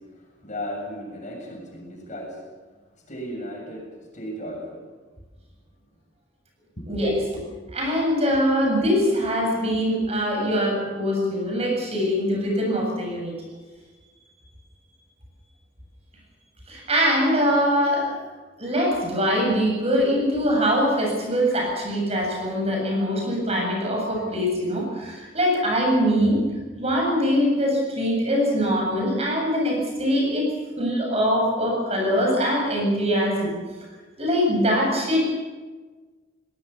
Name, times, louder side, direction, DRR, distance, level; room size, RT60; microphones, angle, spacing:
voice 1, 0.0-2.4 3.1-4.9 6.8-6.9, equal, 40° left, 0 dB, 7.2 m, -35 dB
voice 2, 7.7-13.3 16.7-18.2 18.6-26.4 26.8-30.5 30.8-33.6 34.2-35.3, equal, 30° right, 0 dB, 7.6 m, -23 dB
22.5 x 19.5 x 7.1 m, 1.3 s
head